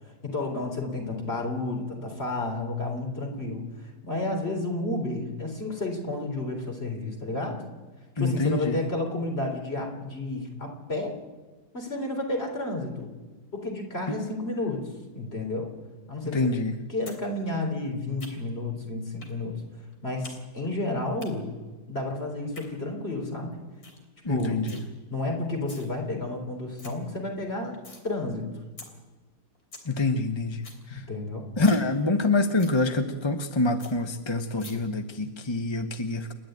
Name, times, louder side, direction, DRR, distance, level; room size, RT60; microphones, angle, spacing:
voice 1, 0.2-3.6 4.0-7.6 8.2-11.2 11.7-13.1 13.5-14.8 15.1-15.7 16.1-16.4 16.9-19.6 20.0-21.5 21.9-23.6 24.3-24.7 25.1-27.7 28.0-28.5 30.9-31.5, left 2 dB, 35° left, 2 dB, 4.1 m, -31 dB
voice 2, 8.2-8.8 13.6-13.7 14.1-14.2 16.3-16.8 24.2-24.8 29.8-31.0 31.6-36.3, left 2 dB, 20° left, 6 dB, 0.8 m, -26 dB
sound 1, 17.1-17.2 17.5-18.6 19.2-19.4 19.7-20.4 20.6-21.3 22.3-22.7 23.1-23.2 23.5-23.6 23.8-24.0 24.3-24.8 25.4-25.9 26.3-26.4 26.6-26.9 27.3-28.0 28.4-28.5 28.8-28.9 29.3-29.4 29.5-29.9 30.2-30.3 30.5-30.8 31.1-31.2 31.5-31.9 32.2-32.3 32.6-32.8 33.2-33.3 33.5-33.6 33.8-33.9 34.6-34.7, left 3 dB, 60° left, 3.9 m, -45 dB
29.5 x 11.0 x 9.2 m, 1.3 s
omnidirectional pair, 1.8 m